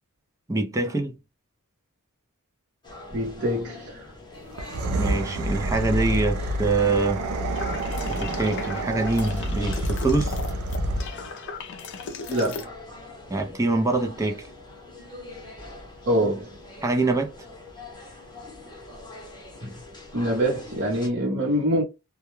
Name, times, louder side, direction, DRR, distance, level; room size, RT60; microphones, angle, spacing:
voice 1, 0.5-1.2 5.0-7.2 8.1-10.4 13.3-14.5 16.8-17.3, right 3 dB, 15° right, 0.5 m, -24 dB
sound 1, 2.8-21.1, left 2 dB, 20° left, 0.8 m, -43 dB
voice 2, 3.1-4.1 12.3-12.7 16.1-16.6 19.6-19.7 20.1-21.8, equal, 50° right, 0.8 m, -25 dB
sound 2, 4.5-11.3, right 1 dB, 85° right, 0.5 m, -28 dB
sound 3, 7.5-12.6, left 4 dB, 55° left, 0.5 m, -37 dB
2.2 x 2.1 x 3.0 m
head